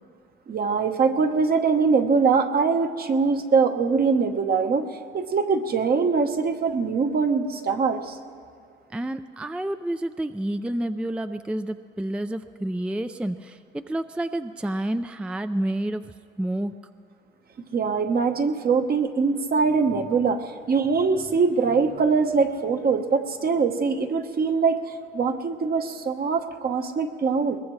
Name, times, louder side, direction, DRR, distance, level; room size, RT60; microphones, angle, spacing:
voice 1, 0.5-4.9 5.1-8.2 17.7-27.6, right 5 dB, 50° right, 6 dB, 1.1 m, -23 dB
voice 2, 8.9-16.7, right 1 dB, 5° right, 10 dB, 0.4 m, -29 dB
22.5 x 20.0 x 3.2 m, 2.2 s
cardioid pair, 90°, 20 cm